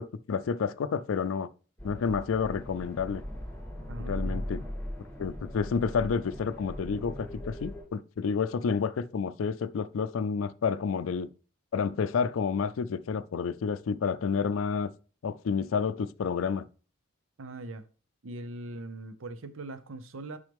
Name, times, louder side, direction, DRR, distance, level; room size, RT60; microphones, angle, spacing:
voice 1, 0.0-1.5 1.8-3.2 4.1-4.6 5.2-11.3 11.7-14.9 15.2-16.7, left 5 dB, 80° left, 0.4 m, -30 dB
sound 1, 1.8-7.8, equal, 10° left, 2.8 m, -39 dB
voice 2, 3.9-4.5 17.4-17.8 18.2-20.4, right 2 dB, 80° right, 0.7 m, -41 dB
6.2 x 5.5 x 3.4 m
head